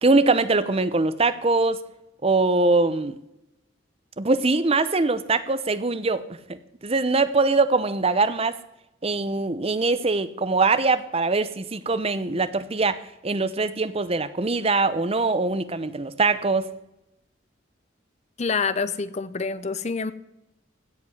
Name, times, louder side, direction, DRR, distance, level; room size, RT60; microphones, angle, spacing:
voice 1, 0.0-1.8 2.2-3.2 4.2-6.2 6.5-8.5 9.0-16.7, right 3 dB, 30° right, 13 dB, 0.7 m, -22 dB
voice 2, 18.4-20.1, left 5 dB, 35° left, 15 dB, 0.6 m, -27 dB
16.0 x 5.4 x 9.7 m, 0.87 s
head